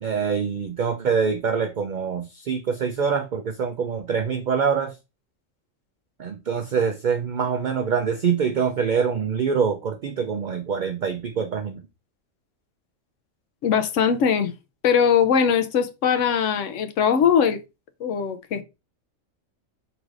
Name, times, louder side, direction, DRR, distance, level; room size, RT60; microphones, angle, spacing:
voice 1, 0.0-4.9 6.2-11.8, right 6 dB, 80° right, 0.4 m, -25 dB
voice 2, 13.6-14.5 14.8-17.6 18.0-18.6, left 7 dB, 75° left, 0.9 m, -21 dB
4.6 x 3.9 x 2.4 m
omnidirectional pair, 1.3 m